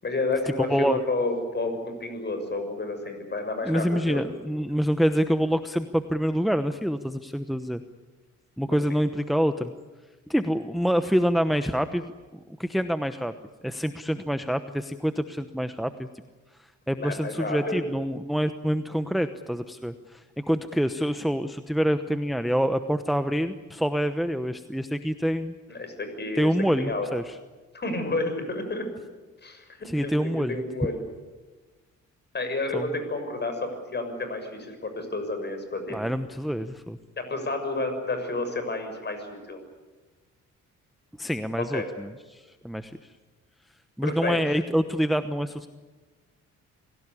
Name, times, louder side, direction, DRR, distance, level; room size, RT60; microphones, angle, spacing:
voice 1, 0.0-4.2 8.7-8.8 17.0-17.8 25.7-26.5 26.8-27.1 27.7-28.9 29.4-31.0 32.3-36.0 37.2-39.6 41.6-41.9 44.0-44.6, left 2 dB, 35° left, 7 dB, 6.8 m, -30 dB
voice 2, 0.7-1.0 3.6-7.8 8.6-9.7 10.3-12.1 12.6-13.3 13.6-16.1 16.9-25.5 26.4-27.4 29.8-30.6 32.7-32.9 35.9-37.0 41.2-43.0 44.0-45.7, equal, ahead, 9 dB, 1.0 m, -26 dB
26.5 x 17.0 x 9.9 m, 1.3 s
cardioid pair, 90°, 30 cm